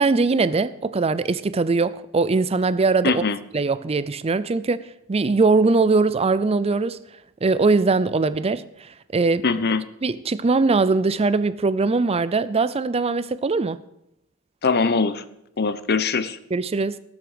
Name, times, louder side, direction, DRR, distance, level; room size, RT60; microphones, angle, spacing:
voice 1, 0.0-3.2 3.5-7.0 7.4-9.4 10.0-13.8 16.5-17.0, right 3 dB, 30° right, 0.5 m, -21 dB
voice 2, 3.0-3.4 9.4-9.8 14.6-15.2 15.6-16.4, left 4 dB, 50° left, 0.8 m, -22 dB
19.0 x 7.8 x 5.1 m
head